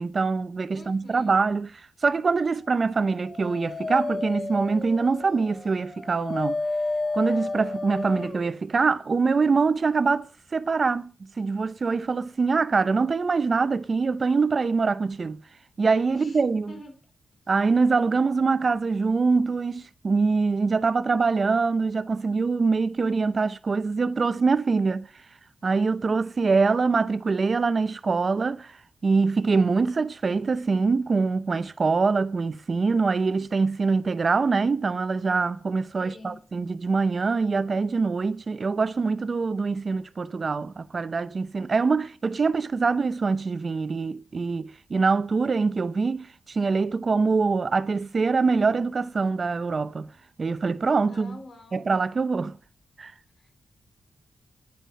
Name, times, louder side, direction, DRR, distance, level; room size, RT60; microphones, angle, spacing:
voice 1, 0.0-6.6 7.1-15.4 15.8-16.7 17.5-25.1 25.6-28.8 29.0-50.1 50.4-51.4 51.7-52.6 53.0-53.1, right 4 dB, 40° right, 0.6 m, -24 dB
voice 2, 0.7-1.4 16.1-17.0 36.0-36.4 51.1-51.8 53.4-53.5, left 2 dB, 50° left, 3.8 m, -46 dB
Dog, 2.9-8.5, left 3 dB, 30° left, 0.5 m, -31 dB
10.0 x 9.2 x 5.3 m
wide cardioid pair, 125°, 0 cm